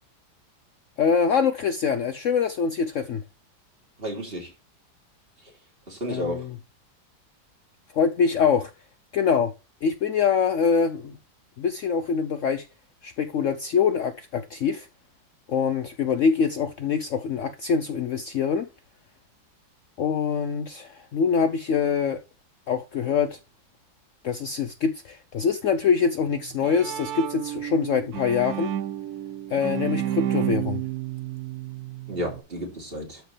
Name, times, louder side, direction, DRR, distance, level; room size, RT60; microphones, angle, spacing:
voice 1, 1.0-3.2 6.1-6.5 7.9-8.7 9.1-9.5 9.8-11.2 11.6-12.7 13.0-14.9 15.5-18.7 20.0-22.2 22.7-23.4 24.2-28.7 29.5-30.8, left 6 dB, 80° left, 0.6 m, -24 dB
voice 2, 4.0-4.5 5.9-6.5 32.1-33.2, equal, 30° right, 2.8 m, -32 dB
Bowed string instrument, 26.3-32.4, right 11 dB, 70° right, 0.9 m, -31 dB
12.5 x 4.5 x 3.3 m
omnidirectional pair, 2.1 m